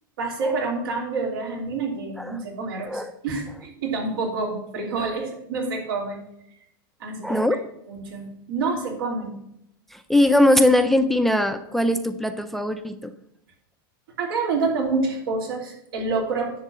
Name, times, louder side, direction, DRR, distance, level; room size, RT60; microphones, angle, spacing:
voice 1, 0.2-6.2 7.0-7.4 7.9-9.3 14.2-16.5, right 3 dB, 85° right, 0 dB, 3.1 m, -27 dB
voice 2, 7.2-7.6 9.9-13.1, left 1 dB, ahead, 10 dB, 0.4 m, -21 dB
10.5 x 4.0 x 7.3 m, 0.77 s
supercardioid pair, 155°, 12 cm